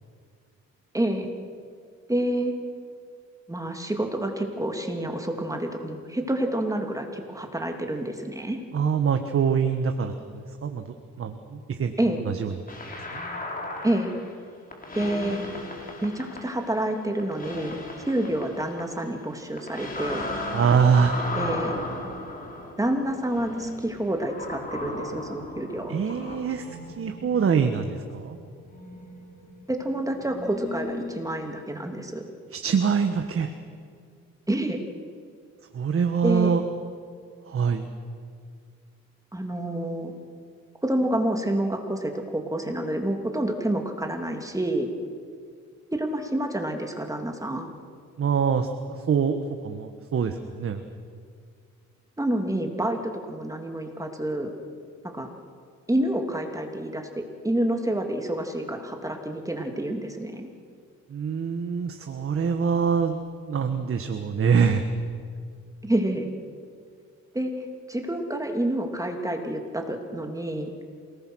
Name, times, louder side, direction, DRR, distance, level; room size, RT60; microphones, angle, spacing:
voice 1, 0.9-1.3 2.1-2.5 3.5-8.6 12.0-12.2 13.8-14.1 14.9-15.4 16.0-17.8 18.1-20.3 21.4-21.8 22.8-26.0 29.7-32.2 34.5-34.8 36.2-36.6 39.3-40.1 40.8-44.9 45.9-47.7 52.2-54.5 55.1-55.3 55.9-60.5 65.8-66.3 67.3-67.5 67.9-70.7, right 1 dB, 10° right, 3 dB, 2.7 m, -28 dB
voice 2, 8.7-10.8 11.2-11.9 12.2-12.5 13.1-13.2 20.5-21.2 25.9-26.7 27.0-28.4 32.5-33.5 35.7-36.6 37.5-37.9 48.2-50.8 61.1-63.2 63.5-64.8, right 6 dB, 45° right, 6 dB, 1.5 m, -24 dB
sound 1, 12.7-14.4 14.7-16.9 17.2-19.2 19.6-31.6, left 2 dB, 30° left, 5.0 m, -36 dB
28.0 x 19.0 x 6.4 m, 2.1 s
cardioid pair, 90°, 30 cm